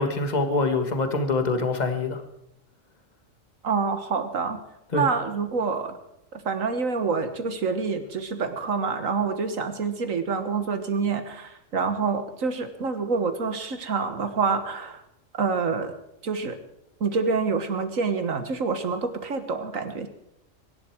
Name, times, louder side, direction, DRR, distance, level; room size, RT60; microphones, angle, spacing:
voice 1, 0.0-2.2 4.9-5.1, left 3 dB, 35° left, 6 dB, 1.7 m, -25 dB
voice 2, 3.6-4.6 4.9-6.0 6.3-15.0 15.4-15.9 16.2-16.6 17.0-20.1, right 5 dB, 80° right, 9 dB, 1.9 m, -27 dB
23.5 x 11.0 x 4.7 m, 0.83 s
omnidirectional pair, 1.4 m